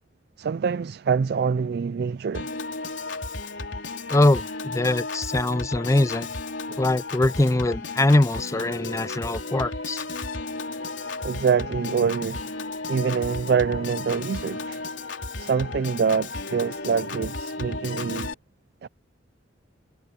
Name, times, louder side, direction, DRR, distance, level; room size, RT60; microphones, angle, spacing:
voice 1, 0.4-2.5 6.7-6.8 11.2-12.5 12.9-14.8 15.4-18.3 18.8-18.9, right 6 dB, 55° right, 0.4 m, -25 dB
Piano / Organ, 2.3-18.3, left 3 dB, 80° left, 3.4 m, -34 dB
voice 2, 4.1-6.3 6.8-10.0, left 2 dB, 15° left, 0.4 m, -22 dB
head